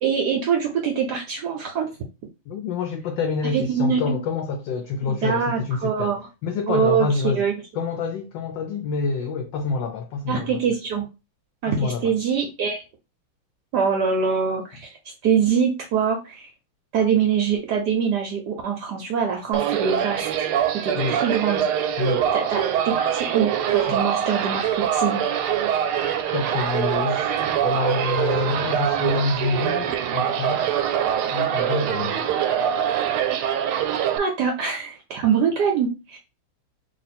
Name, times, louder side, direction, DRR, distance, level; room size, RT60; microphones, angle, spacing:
voice 1, 0.0-1.9 3.5-4.2 5.1-6.3 6.7-7.5 10.3-11.1 11.6-12.8 13.7-14.9 15.2-16.5 16.9-20.5 20.8-21.6 22.3-25.2 34.2-36.2, right 6 dB, 70° right, 1.0 m, -24 dB
voice 2, 2.5-6.1 6.4-7.4 7.7-10.6 11.7-12.1 20.9-21.2 22.0-22.3 23.9-24.0 26.3-30.7 31.3-32.2, left 4 dB, 75° left, 1.1 m, -27 dB
sound 1, 19.5-34.2, right 9 dB, 90° right, 1.5 m, -24 dB
3.0 x 3.0 x 4.1 m
omnidirectional pair, 2.3 m